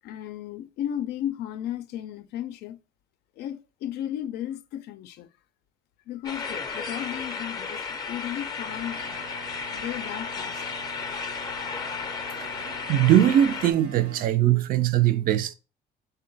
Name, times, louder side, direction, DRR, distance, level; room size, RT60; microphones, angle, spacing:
voice 1, 0.0-2.8 3.4-5.3 6.1-9.2 9.7-10.6, left 11 dB, 80° left, 0.4 m, -34 dB
sound 1, 6.2-13.7, left 5 dB, 25° left, 0.5 m, -34 dB
sound 2, 8.6-14.3, right 2 dB, 85° right, 1.0 m, -45 dB
voice 2, 12.4-15.5, right 12 dB, 60° right, 0.4 m, -21 dB
3.7 x 2.2 x 3.8 m
cardioid pair, 110°, 17 cm